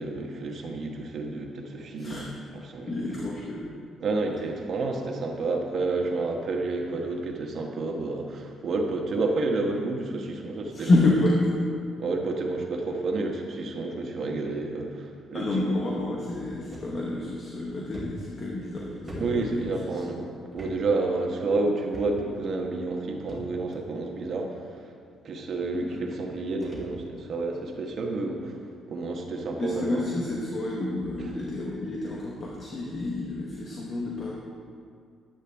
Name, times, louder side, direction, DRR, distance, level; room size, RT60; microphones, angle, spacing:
voice 1, 0.0-2.3 2.5-3.1 4.0-10.9 12.0-15.8 19.2-24.9 25.2-28.6 28.9-30.0 31.2-31.3, right 3 dB, 55° right, 2 dB, 1.2 m, -30 dB
voice 2, 2.0-2.3 2.9-3.7 10.7-11.6 15.3-20.1 25.8-26.0 29.6-34.4, left 2 dB, 45° left, -3 dB, 1.2 m, -28 dB
sound 1, 16.7-16.9 17.3-17.4 17.9-20.0 20.5-20.7 21.0-21.2 21.9-22.4 23.3-23.8 24.7-24.8 25.8-25.9 26.1-27.3 27.7-28.0 28.8-28.9 29.4-29.5 29.7-29.9 30.3-30.5, right 1 dB, 20° right, 2.3 m, -43 dB
10.0 x 8.2 x 3.4 m, 2.2 s
cardioid pair, 95°, 0 cm